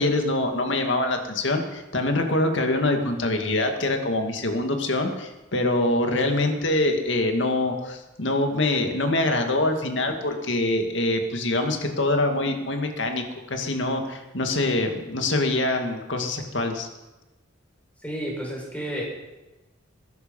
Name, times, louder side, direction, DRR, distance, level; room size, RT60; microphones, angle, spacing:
voice 1, 0.0-16.9, left 2 dB, 65° left, 4 dB, 2.2 m, -24 dB
voice 2, 18.0-19.0, equal, 5° left, -2 dB, 5.5 m, -31 dB
21.0 x 11.0 x 5.5 m, 1.1 s
head